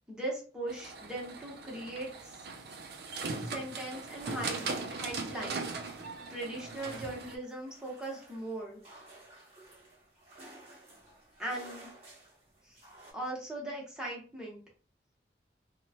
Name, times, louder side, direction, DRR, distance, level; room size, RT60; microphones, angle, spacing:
voice 1, 0.1-2.4 3.5-5.7 6.3-8.8 11.4-11.9 12.7-12.8 13.1-14.6, right 1 dB, 5° right, -4 dB, 0.9 m, -39 dB
sound 1, 0.7-7.3, right 4 dB, 60° right, 0.4 m, -39 dB
sound 2, 4.1-13.1, right 1 dB, 35° right, 1.0 m, -53 dB
2.9 x 2.1 x 2.7 m, 0.39 s
head